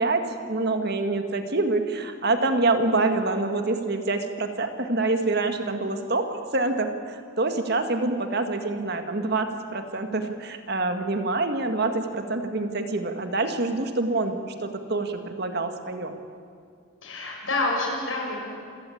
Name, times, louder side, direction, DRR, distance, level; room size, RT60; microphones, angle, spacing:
voice 1, 0.0-16.2, right 2 dB, 55° right, 6 dB, 2.0 m, -26 dB
voice 2, 17.0-18.4, left 2 dB, 85° left, 0 dB, 6.9 m, -27 dB
27.0 x 17.5 x 8.6 m, 2.3 s
head